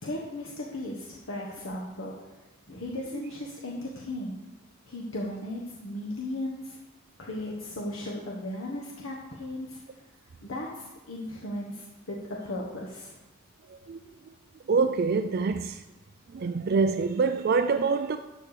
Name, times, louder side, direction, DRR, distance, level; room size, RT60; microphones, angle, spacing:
voice 1, 0.0-2.2 2.7-4.4 4.9-6.8 7.2-9.8 10.4-13.2, left 1 dB, 70° left, 1.3 m, -36 dB
voice 2, 13.7-14.3 14.7-15.8 16.3-18.2, right 4 dB, 45° right, 0.4 m, -26 dB
12.0 x 4.5 x 6.6 m
head